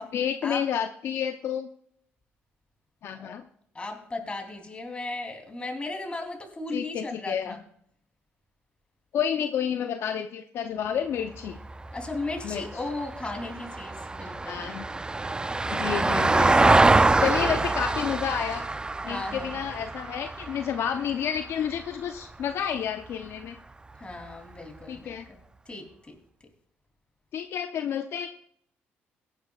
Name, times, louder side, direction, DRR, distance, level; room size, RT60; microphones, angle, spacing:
voice 1, 0.1-1.7 3.0-3.4 6.7-7.6 9.1-11.6 12.4-12.8 14.4-14.9 15.7-16.7 17.2-18.7 19.1-23.5 24.9-25.2 27.3-28.3, left 8 dB, 65° left, 7 dB, 0.7 m, -30 dB
voice 2, 3.7-7.6 11.9-14.6 19.0-19.6 24.0-25.4 25.7-26.1, left 2 dB, 25° left, 3 dB, 3.2 m, -36 dB
Vehicle, 11.3-21.8 24.1-24.2, right 2 dB, 20° right, 0.5 m, -25 dB
17.0 x 10.0 x 2.4 m, 0.67 s
supercardioid pair, 70°, 5 cm